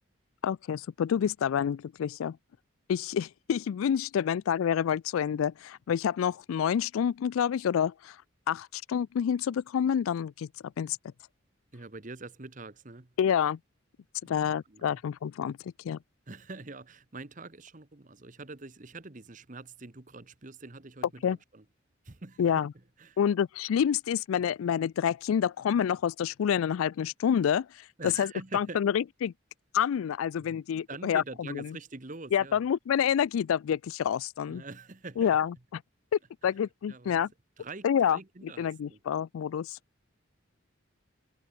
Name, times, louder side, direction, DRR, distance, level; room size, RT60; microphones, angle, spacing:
voice 1, 0.4-2.4 2.9-8.2 8.5-10.5 10.8-11.0 13.2-13.6 14.3-15.6 15.8-16.0 21.2-21.4 22.4-22.7 23.2-27.7 28.0-29.3 29.7-31.8 32.3-34.6 35.2-35.5 36.4-37.3 37.8-38.2 38.6-39.8, left 8 dB, 80° left, 0.3 m, -28 dB
voice 2, 11.7-13.1 14.2-15.0 16.3-21.6 22.0-22.5 23.0-23.2 28.0-28.8 30.4-30.6 30.9-32.6 34.5-35.4 36.4-36.5 36.9-37.2 37.6-39.0, right 3 dB, 40° right, 1.1 m, -45 dB
head